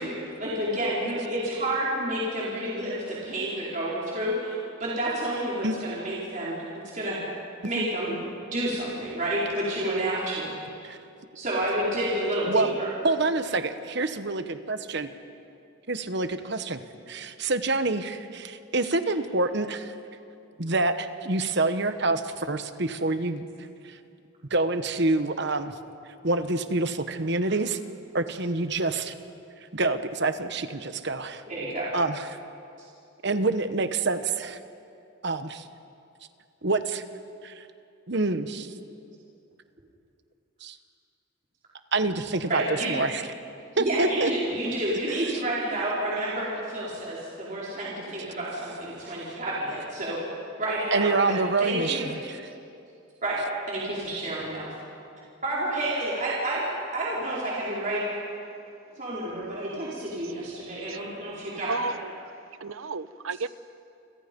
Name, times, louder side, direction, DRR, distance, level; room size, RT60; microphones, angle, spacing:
voice 1, 0.0-6.6 6.9-7.2 7.6-8.2 8.5-10.5 11.3-12.9 31.5-31.9 42.5-42.9 43.8-50.2 50.6-52.0 53.2-54.8 55.4-58.0 59.0-61.9, right 1 dB, 35° right, -7 dB, 4.5 m, -29 dB
voice 2, 13.0-15.1 15.9-19.9 20.6-23.4 23.8-24.0 24.5-25.7 26.2-27.8 28.1-29.1 29.7-31.4 31.9-32.4 33.2-34.6 35.2-35.6 36.6-37.0 37.4-37.7 38.1-38.7 40.6-40.8 41.9-42.6 42.9-43.2 43.8-44.3 50.9-52.4, right 3 dB, 55° right, 9 dB, 1.2 m, -27 dB
voice 3, 61.7-62.3 62.6-63.5, right 4 dB, 75° right, 14 dB, 0.8 m, -33 dB
29.5 x 26.0 x 5.4 m, 2.5 s
head